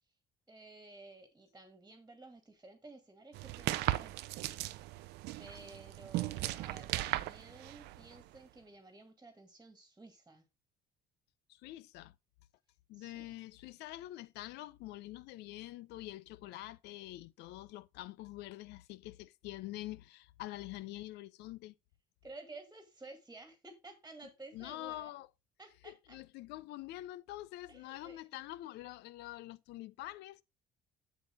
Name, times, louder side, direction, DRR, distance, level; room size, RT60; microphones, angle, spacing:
voice 1, 0.5-4.2 5.4-10.5 12.9-13.4 22.2-25.1 25.6-26.2 27.7-28.2, right 2 dB, 15° right, 1.8 m, -53 dB
sound 1, 3.3-8.4, right 16 dB, 85° right, 0.6 m, -37 dB
voice 2, 11.5-12.2 12.9-21.7 24.5-25.3 25.8-30.4, left 16 dB, 85° left, 0.5 m, -46 dB
8.1 x 7.1 x 3.4 m
cardioid pair, 110°, 17 cm